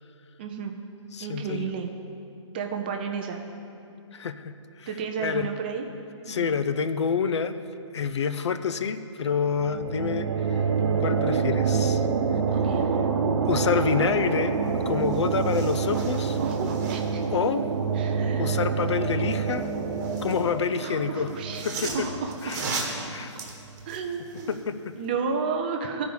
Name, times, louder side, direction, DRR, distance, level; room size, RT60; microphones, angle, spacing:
voice 1, 0.4-0.8 1.2-1.9 2.5-3.4 4.9-5.9 6.3-6.5 12.5-12.8 16.4-17.2 17.9-18.6 20.8-23.3 23.9-24.6 25.0-26.0, right 5 dB, 20° right, 4 dB, 0.4 m, -32 dB
voice 2, 1.1-1.7 4.1-4.9 5.2-5.5 6.3-7.5 7.9-10.3 11.0-12.0 13.5-14.6 14.9-16.4 17.3-17.6 18.4-19.7 20.2-21.3 21.6-22.1 22.4-22.6 23.1-23.3 24.5-24.9, left 6 dB, 65° left, 11 dB, 0.5 m, -27 dB
sound 1, 9.6-23.0, right 5 dB, 55° right, 0.9 m, -27 dB
sound 2, 14.7-14.8 15.0-17.3 19.4-20.5 21.3-24.6 25.0-25.1, right 3 dB, 35° right, 1.3 m, -37 dB
12.0 x 4.8 x 6.8 m, 2.6 s
hypercardioid pair, 160°, 16 cm